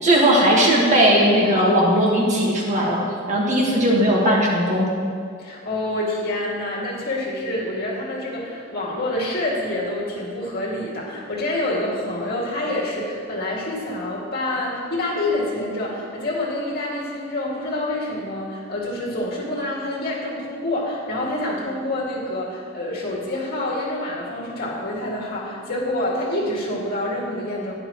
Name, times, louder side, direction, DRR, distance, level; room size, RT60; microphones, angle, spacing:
voice 1, 0.0-4.9, right 1 dB, 40° right, -3 dB, 1.8 m, -18 dB
voice 2, 5.4-27.7, left 1 dB, 55° left, -4 dB, 2.4 m, -27 dB
12.5 x 10.0 x 3.1 m, 2.2 s
head